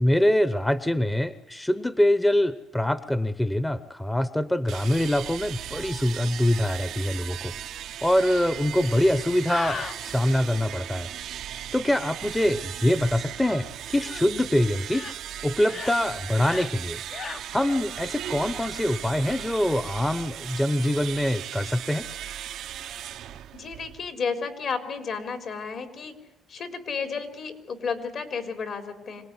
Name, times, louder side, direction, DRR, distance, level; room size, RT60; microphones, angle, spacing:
voice 1, 0.0-7.5 8.0-11.1 11.7-15.1 15.4-17.0 17.5-22.1, left 1 dB, 10° left, 13 dB, 1.0 m, -24 dB
sound 1, 4.7-24.1, right 11 dB, 80° right, 0.8 m, -37 dB
sound 2, 9.5-10.0 14.0-14.3 14.8-15.2 15.6-16.0 16.3-16.7 17.1-17.4, left 5 dB, 45° left, 1.1 m, -36 dB
voice 2, 23.5-26.2 26.5-29.2, left 5 dB, 60° left, 7 dB, 4.0 m, -32 dB
25.5 x 18.5 x 9.8 m, 0.97 s
cardioid pair, 90°, 0 cm